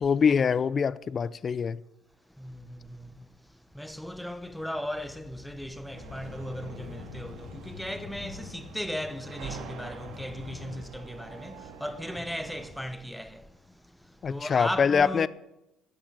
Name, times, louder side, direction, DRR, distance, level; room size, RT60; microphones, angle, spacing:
voice 1, 0.0-1.8 14.2-15.3, left 6 dB, 40° left, 0.5 m, -24 dB
voice 2, 3.8-11.6 11.8-13.4 14.3-15.3, equal, ahead, 1.0 m, -36 dB
sound 1, 4.2-10.8, left 8 dB, 55° left, 1.3 m, -47 dB
sound 2, 5.9-12.7, right 5 dB, 70° right, 2.6 m, -46 dB
13.0 x 8.9 x 8.3 m
supercardioid pair, 90°, 0 cm